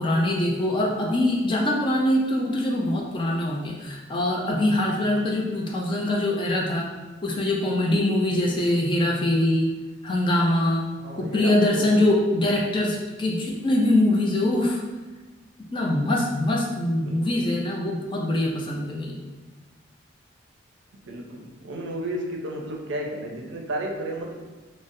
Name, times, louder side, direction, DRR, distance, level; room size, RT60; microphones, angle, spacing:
voice 1, 0.0-6.9 7.2-9.7 10.0-10.9 11.2-14.8 15.7-19.2, left 1 dB, 25° left, -1 dB, 0.3 m, -23 dB
voice 2, 11.0-12.0 17.0-17.4 21.1-24.3, right 1 dB, 70° right, 1 dB, 0.5 m, -33 dB
3.8 x 2.0 x 2.6 m, 1.3 s
head